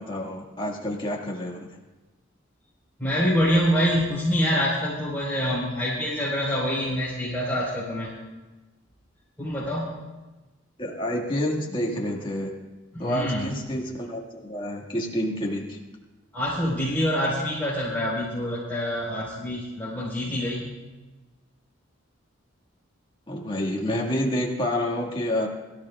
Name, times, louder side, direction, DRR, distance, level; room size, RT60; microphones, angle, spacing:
voice 1, 0.0-1.8 10.8-12.5 13.0-15.8 23.3-25.5, left 1 dB, 25° left, -1 dB, 1.9 m, -28 dB
voice 2, 3.0-8.2 9.4-10.0 12.9-13.5 16.3-20.7, equal, 10° left, -9 dB, 4.3 m, -26 dB
23.0 x 14.0 x 2.4 m, 1.2 s
head